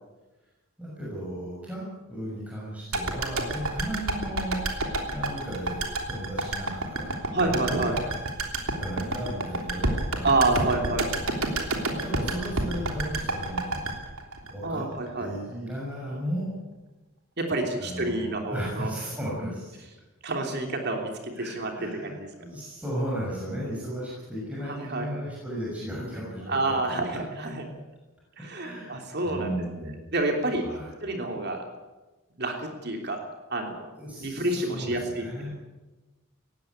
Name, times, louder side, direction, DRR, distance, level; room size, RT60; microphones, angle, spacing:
voice 1, 0.8-4.6 4.9-8.1 8.7-10.4 10.8-11.0 11.6-13.8 14.5-14.8 15.2-16.5 17.8-19.7 21.4-22.1 22.4-26.8 27.1-27.2 28.5-30.0 30.6-30.9 34.0-35.5, equal, 5° right, -6 dB, 6.2 m, -35 dB
sound 1, 2.9-15.1 15.4-15.5, right 2 dB, 70° right, 3.2 m, -30 dB
voice 2, 7.3-8.0 10.2-11.1 14.6-15.3 17.4-18.9 20.2-22.3 24.6-25.1 26.5-27.6 28.4-30.6 31.0-31.7 32.4-33.2 33.5-33.9 34.2-35.5, right 2 dB, 45° right, 3 dB, 3.2 m, -28 dB
19.0 x 16.0 x 9.5 m, 1.1 s
head